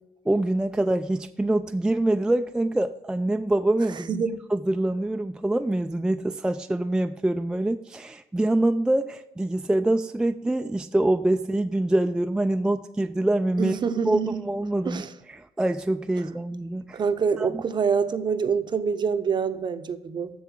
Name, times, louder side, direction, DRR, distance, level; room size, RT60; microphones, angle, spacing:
voice 1, 0.3-4.2 4.5-13.8 14.1-15.0 15.3-17.0 17.4-17.6, right 1 dB, 5° right, 0.3 m, -25 dB
voice 2, 3.9-4.4 13.6-14.4 14.8-15.1 16.9-20.4, right 6 dB, 40° right, 0.7 m, -26 dB
7.1 x 6.8 x 7.4 m
cardioid pair, 105°, 12 cm